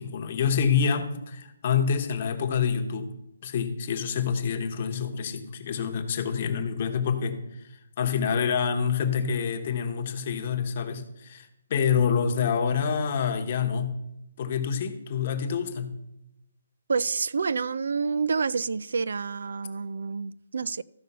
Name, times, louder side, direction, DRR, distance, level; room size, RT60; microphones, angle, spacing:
voice 1, 0.0-3.1 3.4-13.9 14.4-15.9, left 6 dB, 35° left, 1.1 m, -27 dB
voice 2, 16.9-20.8, right 5 dB, 65° right, 0.4 m, -28 dB
13.5 x 5.3 x 5.4 m
hypercardioid pair, 170°, 0 cm